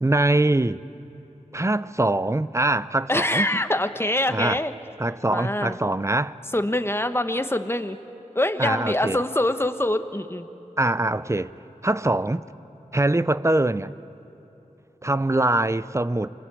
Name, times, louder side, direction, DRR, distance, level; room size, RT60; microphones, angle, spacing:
voice 1, 0.0-0.8 1.5-3.5 4.3-4.6 5.0-6.4 8.6-9.2 10.8-11.5 11.8-12.4 12.9-13.9 15.0-16.3, right 2 dB, 20° right, 0.6 m, -23 dB
voice 2, 3.1-4.7 5.3-5.8 6.5-8.0 8.3-10.5, left 1 dB, 15° left, 1.2 m, -24 dB
28.5 x 23.5 x 8.4 m
wide cardioid pair, 50°, 14 cm